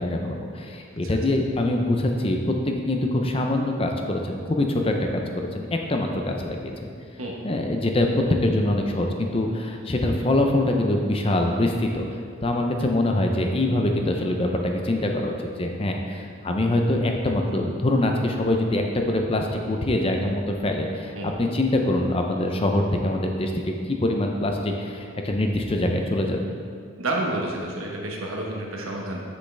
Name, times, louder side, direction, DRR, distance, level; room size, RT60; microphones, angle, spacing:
voice 1, 0.0-6.9 7.4-12.0 12.4-26.5, left 1 dB, 25° left, 3 dB, 0.5 m, -24 dB
voice 2, 27.0-29.2, right 1 dB, 80° right, -1 dB, 1.2 m, -29 dB
7.7 x 6.5 x 3.4 m, 2.2 s
head